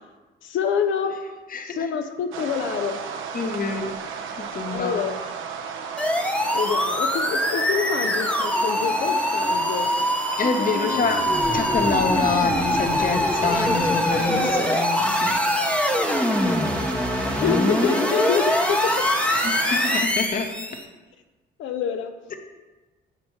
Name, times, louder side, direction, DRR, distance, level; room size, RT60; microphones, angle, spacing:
voice 1, 0.4-1.2 1.6-3.0 4.7-5.2 6.5-9.9 10.6-11.0 14.1-14.7 17.3-18.9 21.6-22.1, left 7 dB, 75° left, 7 dB, 0.6 m, -27 dB
voice 2, 1.5-1.9 3.3-3.9 4.4-5.1 10.4-15.4 16.1-16.3 19.3-20.5, left 4 dB, 45° left, 5 dB, 1.0 m, -27 dB
sound 1, 2.3-20.0, right 6 dB, 80° right, 0.7 m, -34 dB
sound 2, 6.0-20.8, left 1 dB, 5° left, 0.7 m, -23 dB
8.2 x 4.3 x 4.5 m, 1.2 s
cardioid pair, 90°, 20 cm